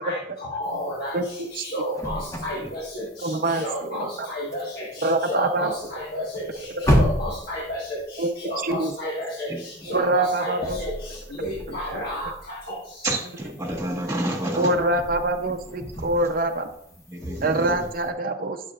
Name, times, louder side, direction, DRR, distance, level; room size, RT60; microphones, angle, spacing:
voice 1, 0.0-12.8, left 1 dB, 55° left, -5 dB, 1.6 m, -32 dB
sound 1, 0.6-18.1, equal, 15° left, 1.2 m, -33 dB
voice 2, 3.2-4.3 5.0-5.7 6.7-6.8 8.2-8.3 8.6-8.9 9.9-10.8 14.6-16.7 17.4-18.6, right 2 dB, 50° right, 5 dB, 0.7 m, -24 dB
voice 3, 13.0-14.7 17.1-17.8, right 1 dB, 15° right, -2 dB, 1.8 m, -29 dB
12.0 x 6.7 x 2.5 m, 0.72 s
head